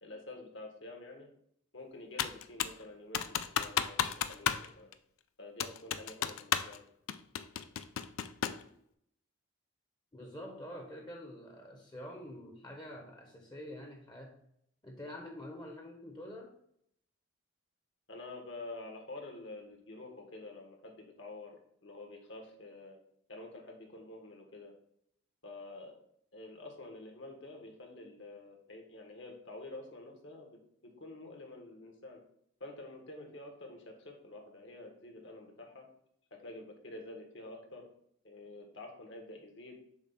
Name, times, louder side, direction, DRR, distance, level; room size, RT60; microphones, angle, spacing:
voice 1, 0.0-1.3 1.7-4.9 5.4-6.8 18.1-23.0 23.3-24.7 25.4-26.0 26.3-30.5 30.8-32.2 32.6-35.9 36.3-37.9 38.2-39.8, left 2 dB, 65° left, 2 dB, 1.3 m, -48 dB
Computer keyboard, 2.2-2.8 3.1-4.7 4.9-5.0 5.6-6.8 7.1-8.7, left 9 dB, 80° left, 0.4 m, -33 dB
voice 2, 10.1-14.3 14.8-16.5, left 1 dB, 20° left, 2 dB, 0.8 m, -46 dB
7.1 x 2.4 x 5.6 m, 0.70 s
head